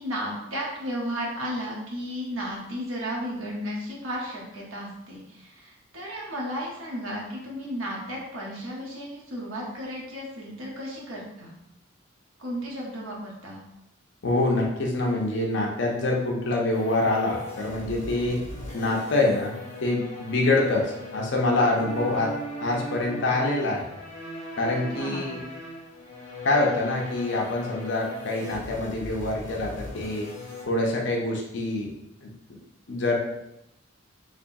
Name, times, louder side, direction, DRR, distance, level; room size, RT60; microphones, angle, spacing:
voice 1, 0.0-11.5 12.4-13.6 21.5-21.6 24.6-25.3, equal, 85° right, -3 dB, 1.0 m, -34 dB
voice 2, 14.2-18.4 18.7-19.6 19.8-22.3 22.6-23.8 24.5-25.4 26.4-30.3 30.7-31.9 32.2-32.3 32.9-33.2, left 2 dB, 60° left, -1 dB, 0.6 m, -25 dB
sound 1, 16.7-30.6, left 1 dB, 35° left, 1.0 m, -39 dB
3.4 x 3.0 x 2.6 m, 0.86 s
head